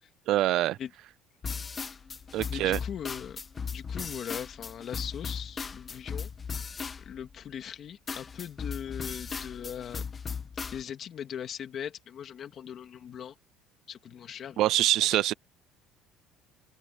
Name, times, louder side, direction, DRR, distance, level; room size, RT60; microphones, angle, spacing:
voice 1, 0.3-0.8 2.3-2.8 14.6-15.3, right 14 dB, 55° right, 0.4 m, -24 dB
sound 1, 1.4-7.5 8.1-10.8, left 6 dB, 20° left, 1.6 m, -37 dB
voice 2, 2.5-3.4 3.7-6.3 7.0-10.0 10.7-13.3 13.9-14.6 15.0-15.2, left 9 dB, 35° left, 2.5 m, -40 dB
open air
cardioid pair, 170°, 0 cm